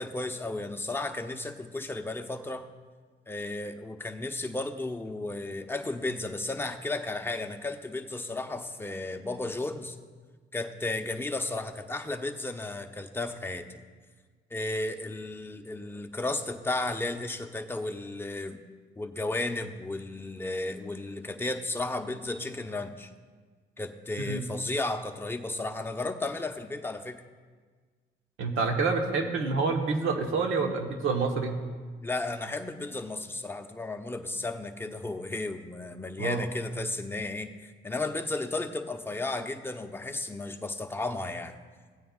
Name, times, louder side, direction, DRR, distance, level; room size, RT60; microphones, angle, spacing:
voice 1, 0.0-2.7 3.3-10.0 10.5-13.8 14.5-18.6 19.0-23.1 23.8-27.2 32.0-41.6, left 2 dB, 10° left, 5 dB, 0.7 m, -34 dB
voice 2, 28.4-31.6 36.2-36.4, right 4 dB, 90° right, 4 dB, 1.2 m, -27 dB
16.0 x 9.1 x 2.4 m, 1.5 s
cardioid pair, 90°, 20 cm